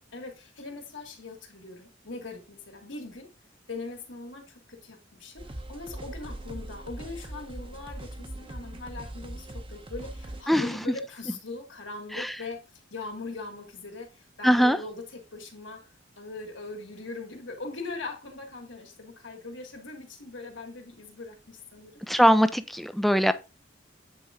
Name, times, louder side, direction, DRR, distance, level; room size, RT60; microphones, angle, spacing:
voice 1, 0.1-3.3 3.7-12.6 12.9-15.9 16.2-22.0, left 3 dB, 80° left, 2.6 m, -40 dB
sound 1, 5.4-10.4, right 1 dB, 30° right, 0.8 m, -40 dB
voice 2, 10.5-10.8 12.1-12.3 14.4-14.8 22.1-23.3, equal, ahead, 0.5 m, -21 dB
9.4 x 4.6 x 3.6 m
head